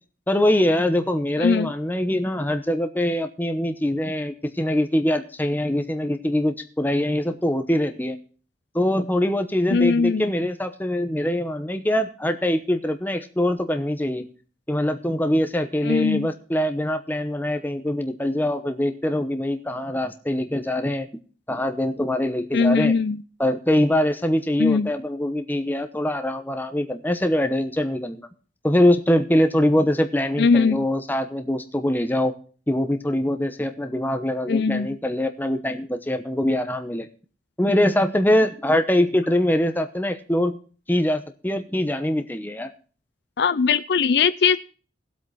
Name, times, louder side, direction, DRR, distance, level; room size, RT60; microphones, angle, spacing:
voice 1, 0.3-8.2 8.7-14.3 14.7-21.1 21.5-22.9 23.4-28.3 28.6-32.3 32.7-37.1 37.6-40.6 40.9-42.7, left 1 dB, 10° left, 7 dB, 1.0 m, -23 dB
voice 2, 1.4-1.7 9.7-10.2 15.8-16.3 22.5-23.2 24.6-24.9 30.4-30.8 34.5-35.0 43.4-44.6, left 5 dB, 70° left, 15 dB, 0.5 m, -20 dB
18.0 x 8.1 x 4.2 m, 0.39 s
head